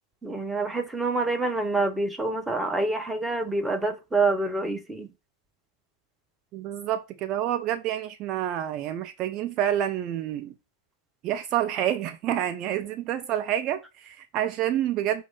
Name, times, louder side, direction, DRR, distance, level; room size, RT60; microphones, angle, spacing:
voice 1, 0.2-5.1, right 3 dB, 5° right, 0.9 m, -27 dB
voice 2, 6.5-10.5 11.2-15.2, right 11 dB, 35° right, 0.6 m, -28 dB
6.1 x 2.8 x 5.6 m
figure-of-eight pair, 90°, 0 cm